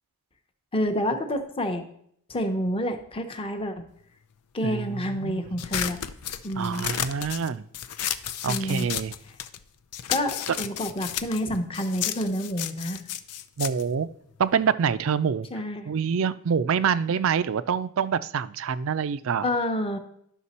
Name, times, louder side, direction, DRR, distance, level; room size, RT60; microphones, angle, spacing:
voice 1, 0.7-1.8 2.3-3.8 4.5-6.0 6.4-6.9 8.5-8.9 10.1-13.0 15.5-15.9 19.4-20.0, equal, 25° left, 6 dB, 0.8 m, -28 dB
voice 2, 4.6-5.4 6.6-7.6 8.4-9.1 10.5-10.6 13.6-14.1 14.4-15.5 15.8-19.4, right 6 dB, 60° right, 15 dB, 0.4 m, -26 dB
sound 1, 5.6-9.6 9.9-14.7, left 10 dB, 90° left, 0.5 m, -33 dB
11.0 x 5.9 x 4.2 m, 0.70 s
head